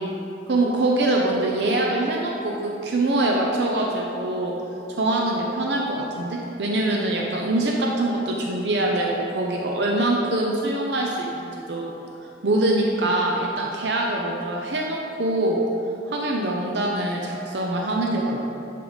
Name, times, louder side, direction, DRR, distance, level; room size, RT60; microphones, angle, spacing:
voice 1, 0.5-4.5 4.9-11.9 12.4-15.6 16.1-18.4, right 2 dB, 70° right, -1 dB, 0.6 m, -24 dB
10.5 x 4.7 x 4.0 m, 2.8 s
head